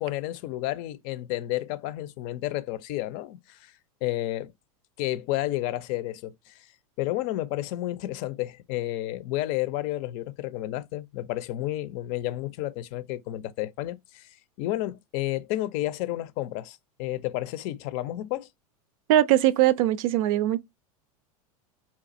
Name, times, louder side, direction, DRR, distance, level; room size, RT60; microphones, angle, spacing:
voice 1, 0.0-3.7 4.0-4.5 5.0-6.7 7.0-14.3 14.6-18.5, left 15 dB, 55° left, 0.5 m, -31 dB
voice 2, 19.1-20.6, right 13 dB, 65° right, 0.4 m, -21 dB
4.0 x 2.4 x 2.6 m
hypercardioid pair, 100°, 19 cm